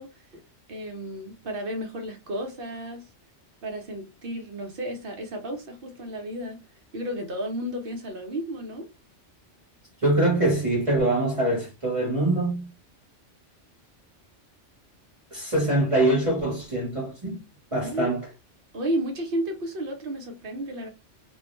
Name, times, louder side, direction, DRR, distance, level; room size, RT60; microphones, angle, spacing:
voice 1, 0.0-3.1 3.6-6.6 6.9-8.9 17.7-18.2 18.7-20.9, right 1 dB, 55° right, 0.7 m, -33 dB
voice 2, 10.0-12.7 15.3-17.4 17.7-18.2, right 1 dB, 30° right, 1.0 m, -24 dB
2.5 x 2.1 x 2.9 m
omnidirectional pair, 1.2 m